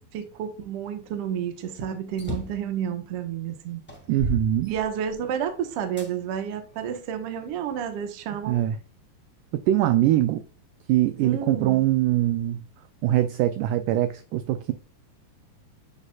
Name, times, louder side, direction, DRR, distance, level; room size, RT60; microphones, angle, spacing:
voice 1, 0.1-3.8 4.7-8.6 11.2-11.8, right 8 dB, 70° right, 1.4 m, -30 dB
sound 1, 2.1-2.7 3.3-3.4 3.9-5.3 6.0-6.1 6.8-7.9, left 2 dB, 10° left, 0.5 m, -35 dB
voice 2, 4.1-4.7 8.5-8.8 9.7-10.4 10.9-12.6 13.0-14.7, right 13 dB, 85° right, 1.8 m, -22 dB
8.1 x 5.1 x 2.3 m
omnidirectional pair, 4.2 m